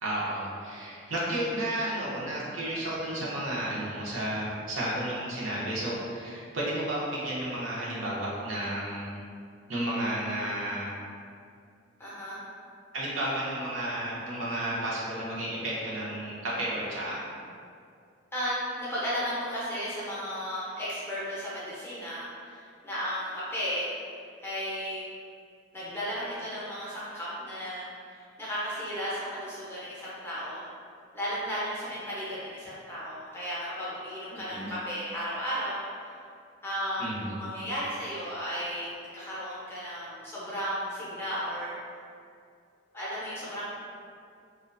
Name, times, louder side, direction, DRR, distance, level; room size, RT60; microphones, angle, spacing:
voice 1, 0.0-9.1 9.7-11.0 12.9-17.2 34.3-34.7 37.0-37.4, right 1 dB, 80° right, -6 dB, 0.6 m, -32 dB
voice 2, 12.0-12.4 18.3-23.9 24.4-25.1 25.7-27.9 28.1-30.6 31.1-35.8 36.0-36.1 36.6-41.7 42.9-43.7, equal, 10° left, -9 dB, 0.5 m, -34 dB
2.4 x 2.1 x 2.4 m, 2.3 s
head